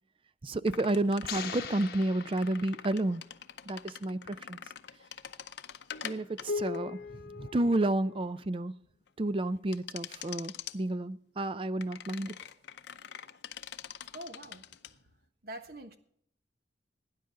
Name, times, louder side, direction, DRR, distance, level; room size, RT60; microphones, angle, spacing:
voice 1, 0.4-3.2 3.7-4.6 6.0-7.0 7.4-8.7 9.2-12.4, right 1 dB, 30° right, 0.5 m, -31 dB
sound 1, 0.7-8.4 9.7-10.8 11.8-14.9, left 6 dB, 75° left, 0.7 m, -42 dB
sound 2, 1.2-3.1, left 7 dB, 55° left, 1.5 m, -41 dB
voice 2, 14.1-14.6 15.4-16.0, right 1 dB, 60° right, 1.4 m, -44 dB
18.0 x 9.9 x 3.8 m
head